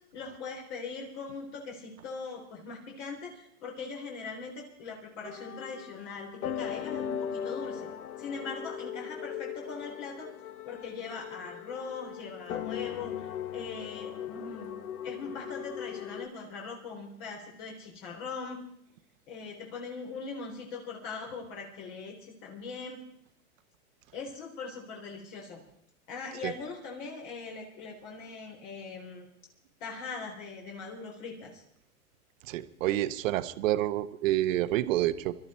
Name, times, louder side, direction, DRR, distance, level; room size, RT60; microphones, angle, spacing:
voice 1, 0.1-6.3 6.5-7.8 8.2-10.3 10.7-14.7 15.0-18.6 19.3-23.0 24.1-25.6 26.1-29.3 29.8-31.6, left 4 dB, 50° left, 0 dB, 3.9 m, -41 dB
sound 1, 5.2-16.3, left 9 dB, 80° left, 1.0 m, -38 dB
voice 2, 32.5-35.4, right 14 dB, 60° right, 13 dB, 1.1 m, -28 dB
24.5 x 13.0 x 4.4 m, 0.74 s
hypercardioid pair, 120°, 44 cm